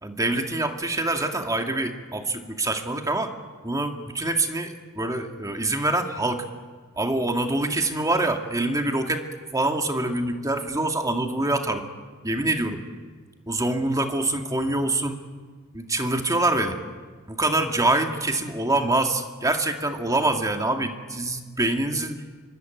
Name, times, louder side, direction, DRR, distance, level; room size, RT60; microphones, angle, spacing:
voice 1, 0.0-3.3 3.6-6.4 7.0-9.2 9.5-11.8 12.2-12.8 13.5-15.2 15.7-16.8 17.3-22.2, right 2 dB, 15° right, 4 dB, 2.2 m, -25 dB
25.0 x 24.5 x 9.4 m, 1.5 s
head